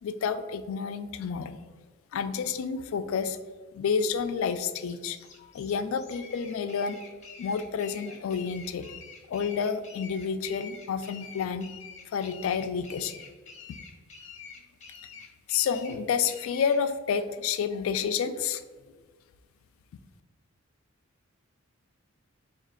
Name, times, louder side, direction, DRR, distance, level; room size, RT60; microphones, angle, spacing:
voice 1, 0.0-1.6 2.1-3.4 3.7-7.0 7.4-8.9 9.3-11.7 12.1-13.2 15.5-18.8, left 6 dB, 65° left, 10 dB, 0.3 m, -30 dB
sound 1, 4.4-16.8, left 6 dB, 35° left, 0.6 m, -47 dB
4.0 x 2.4 x 3.6 m, 1.4 s
head